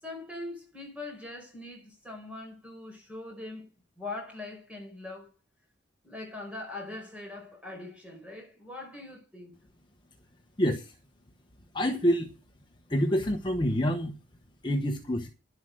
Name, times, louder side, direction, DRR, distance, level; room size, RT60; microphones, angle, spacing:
voice 1, 0.0-3.7 4.0-5.3 6.0-9.5, left 2 dB, 5° right, 4.6 m, -41 dB
voice 2, 10.6-11.0 11.7-12.3 12.9-14.2 14.6-15.3, equal, 25° left, 1.0 m, -27 dB
11.5 x 8.1 x 6.3 m
head